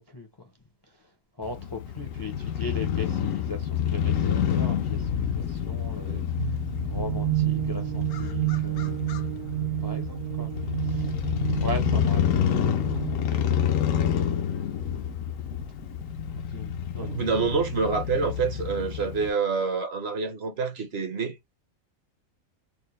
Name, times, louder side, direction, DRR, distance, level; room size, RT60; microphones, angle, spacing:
voice 1, 0.1-0.5 1.4-6.6 6.9-10.5 10.8-11.2 11.6-12.4 12.7-13.0 13.3-13.5 14.1-15.0 16.5-17.1 17.8-18.0, left 2 dB, 30° left, 0.4 m, -39 dB
Crow / Motorcycle, 1.4-19.3, left 9 dB, 75° left, 1.0 m, -28 dB
sound 1, 6.4-14.1, right 20 dB, 70° right, 0.4 m, -30 dB
voice 2, 17.0-21.4, right 5 dB, 55° right, 0.9 m, -27 dB
4.3 x 2.0 x 3.1 m
omnidirectional pair, 1.5 m